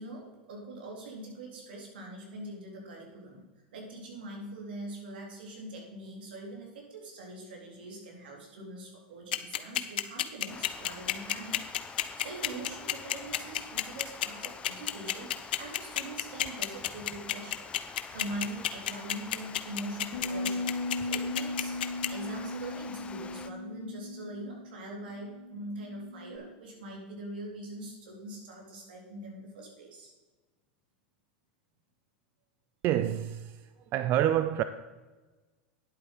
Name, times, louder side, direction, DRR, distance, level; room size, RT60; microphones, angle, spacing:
voice 1, 0.0-3.4 3.7-17.7 18.1-30.1, right 1 dB, 85° right, 3.8 m, -43 dB
sound 1, 9.3-22.1, left 13 dB, 80° left, 0.8 m, -29 dB
Water, 10.5-23.5, left 6 dB, 20° left, 0.7 m, -47 dB
sound 2, 20.1-26.4, left 2 dB, 65° left, 2.0 m, -37 dB
voice 2, 32.8-33.4 33.9-34.6, right 11 dB, 45° right, 0.6 m, -26 dB
10.5 x 8.3 x 5.6 m
hypercardioid pair, 110°, 5 cm